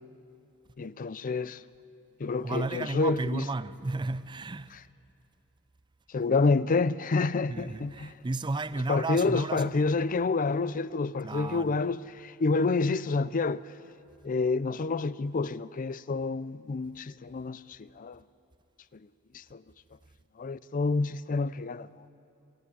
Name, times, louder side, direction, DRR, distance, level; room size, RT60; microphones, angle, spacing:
voice 1, 0.8-1.6 2.2-3.4 6.1-8.1 8.9-13.6 14.2-18.2 19.3-19.6 20.4-21.9, left 3 dB, 40° left, 0.4 m, -28 dB
voice 2, 2.4-4.7 7.5-10.1 11.2-11.8, right 3 dB, 20° right, 0.5 m, -34 dB
26.5 x 12.5 x 9.8 m
head